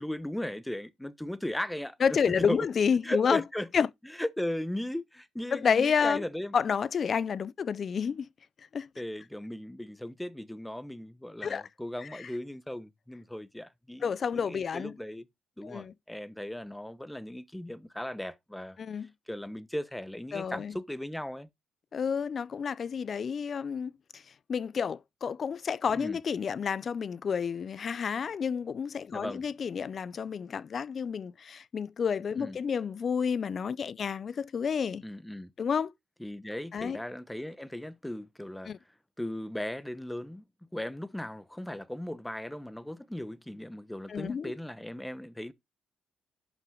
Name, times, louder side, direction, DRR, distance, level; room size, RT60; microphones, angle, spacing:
voice 1, 0.0-2.7 3.0-3.7 4.2-6.5 9.0-15.2 15.6-18.8 19.3-21.5 25.9-26.2 29.1-29.4 32.4-32.6 35.0-35.5 36.2-38.7 39.2-40.5 40.7-45.5, left 1 dB, 5° left, 0.9 m, -37 dB
voice 2, 2.0-3.4 3.7-3.9 5.5-6.2 6.5-8.3 8.7-8.9 11.4-11.7 12.0-12.3 14.0-14.9 15.6-15.9 18.8-19.1 20.3-20.7 21.9-24.2 24.5-35.0 35.6-35.9 36.7-37.0 38.7-38.8 44.1-44.5, left 6 dB, 50° left, 0.4 m, -30 dB
11.0 x 5.7 x 3.8 m
cardioid pair, 90°, 0 cm